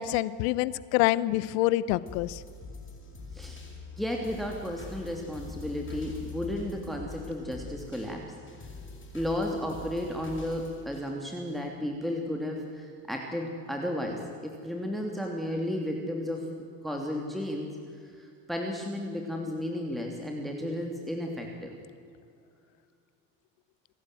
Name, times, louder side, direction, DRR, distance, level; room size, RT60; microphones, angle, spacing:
voice 1, 0.0-2.4, left 16 dB, 75° left, 18 dB, 1.0 m, -26 dB
sound 1, 2.0-12.1 12.6-12.7, left 4 dB, 25° left, 7.5 m, -44 dB
voice 2, 4.0-8.3 9.1-16.5 16.8-17.8 18.2-21.8, left 1 dB, ahead, 1 dB, 3.1 m, -33 dB
27.5 x 12.0 x 9.3 m, 2.3 s
supercardioid pair, 85°, 48 cm